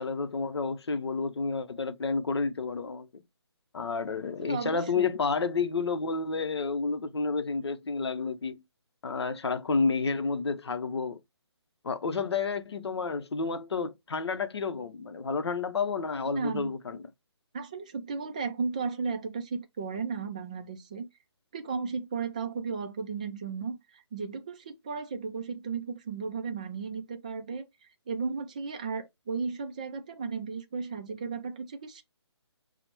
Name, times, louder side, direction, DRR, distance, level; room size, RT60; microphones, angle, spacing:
voice 1, 0.0-3.2 3.7-8.6 9.0-11.2 11.8-17.0, left 4 dB, 65° left, 0.7 m, -30 dB
voice 2, 4.4-5.1 16.3-16.7 17.5-21.1 21.5-27.6 28.1-32.0, right 5 dB, 15° right, 0.3 m, -35 dB
5.6 x 2.1 x 3.0 m
figure-of-eight pair, 160°, 15 cm